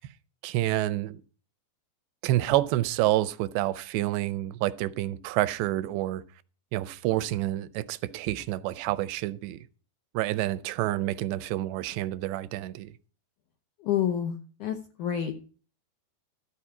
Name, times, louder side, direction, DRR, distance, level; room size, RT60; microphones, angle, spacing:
voice 1, 0.4-1.2 2.2-6.2 6.7-9.6 10.1-12.9, right 15 dB, 80° right, 2.8 m, -28 dB
voice 2, 13.8-15.4, left 9 dB, 90° left, 1.7 m, -29 dB
14.0 x 4.8 x 8.5 m
omnidirectional pair, 5.0 m